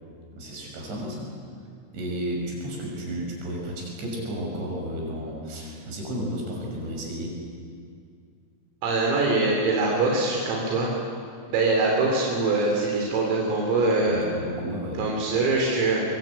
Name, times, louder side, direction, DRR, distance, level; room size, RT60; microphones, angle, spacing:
voice 1, 0.1-1.4 1.9-7.4 14.1-15.0, equal, 60° right, -1 dB, 8.2 m, -33 dB
voice 2, 8.8-11.0 11.5-14.2 15.0-16.0, right 3 dB, 80° right, -1 dB, 6.0 m, -23 dB
25.0 x 23.5 x 9.0 m, 2.2 s
omnidirectional pair, 5.9 m